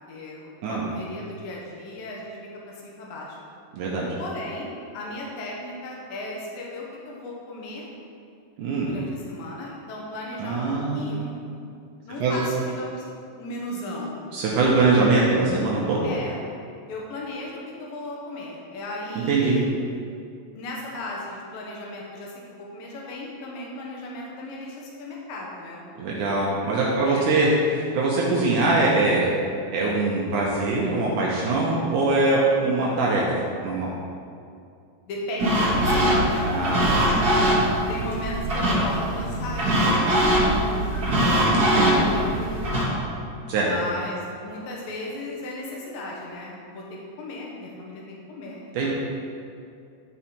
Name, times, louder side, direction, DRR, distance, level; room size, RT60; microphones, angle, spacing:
voice 1, 0.1-2.4 2.8-3.3 4.2-4.7 4.9-7.9 8.8-10.6 10.9-11.3 12.0-13.1 13.4-14.2 16.0-16.3 16.9-19.7 20.5-25.8 27.0-27.5 31.7-31.9 35.1-36.8 37.1-37.6 37.9-43.0 43.6-46.8 47.2-48.9, left 1 dB, 80° left, -3 dB, 2.9 m, -36 dB
voice 2, 3.7-4.1 8.6-8.9 10.4-11.4 12.2-12.4 14.3-16.1 19.3-19.6 26.0-27.5 28.0-29.3 29.7-33.3 33.6-33.9 36.5-37.7 41.5-42.1 43.5-43.7 48.7-48.9, right 3 dB, 70° right, -4 dB, 2.3 m, -23 dB
sound 1, 35.4-42.9, equal, 40° right, 1.5 m, -22 dB
12.0 x 4.8 x 4.3 m, 2.4 s
omnidirectional pair, 4.0 m